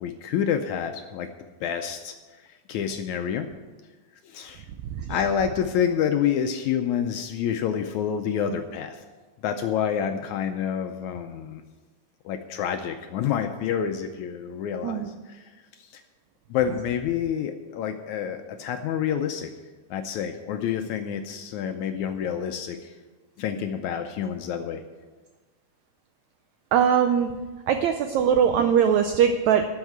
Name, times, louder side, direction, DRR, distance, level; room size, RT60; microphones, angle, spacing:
voice 1, 0.0-1.3 1.6-2.1 2.7-3.5 4.2-4.7 5.1-9.0 9.4-11.6 12.3-15.4 15.9-16.0 16.5-19.5 19.9-22.9 23.4-24.8, left 8 dB, 80° left, 6 dB, 1.8 m, -28 dB
voice 2, 26.7-27.3 27.7-29.7, right 8 dB, 85° right, 7 dB, 1.6 m, -21 dB
12.0 x 6.4 x 7.9 m, 1.3 s
omnidirectional pair, 3.8 m